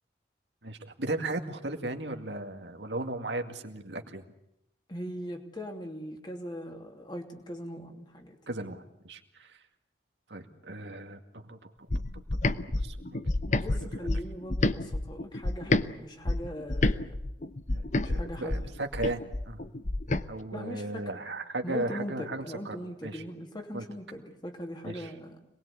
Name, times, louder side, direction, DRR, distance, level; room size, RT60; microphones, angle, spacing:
voice 1, 0.6-4.2 8.5-9.6 10.3-11.7 12.5-13.6 17.7-19.6 20.3-22.8 23.0-23.2 23.7-23.8 24.8-25.1, right 2 dB, 75° right, 5 dB, 2.2 m, -36 dB
voice 2, 4.9-8.4 13.5-17.2 18.0-18.7 20.5-21.3 21.6-25.4, equal, 25° left, 3 dB, 2.9 m, -40 dB
sound 1, 11.9-15.9 16.3-20.3, left 2 dB, 40° left, 0.9 m, -29 dB
26.5 x 20.5 x 8.3 m, 0.83 s
head